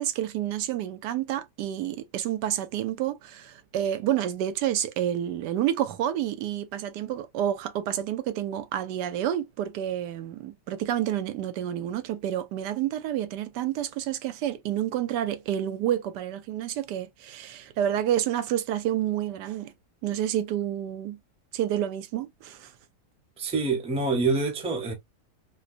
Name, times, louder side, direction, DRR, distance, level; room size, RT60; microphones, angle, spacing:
voice 1, 0.0-19.7 20.0-21.2 21.5-22.7, right 11 dB, 90° right, 1.2 m, -29 dB
voice 2, 23.4-24.9, right 3 dB, 5° right, 0.5 m, -26 dB
4.3 x 2.2 x 2.4 m
omnidirectional pair, 1.8 m